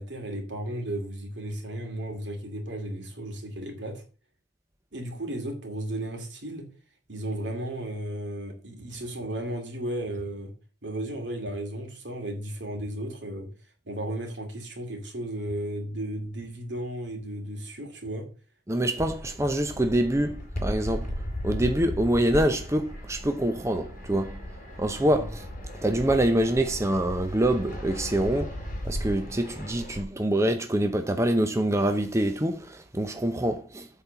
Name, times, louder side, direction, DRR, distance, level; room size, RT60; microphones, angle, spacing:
voice 1, 0.0-4.0 4.9-6.7 7.1-10.5 10.8-13.5 13.9-18.3 25.0-25.3, right 1 dB, 75° right, 2.4 m, -34 dB
voice 2, 18.7-21.1 21.4-24.4 24.8-25.4 25.8-28.6 28.8-33.9, right 1 dB, 15° right, 0.7 m, -25 dB
Fixed-wing aircraft airplane, 19.0-30.0, equal, 45° left, 4.6 m, -36 dB
8.6 x 4.2 x 6.9 m
head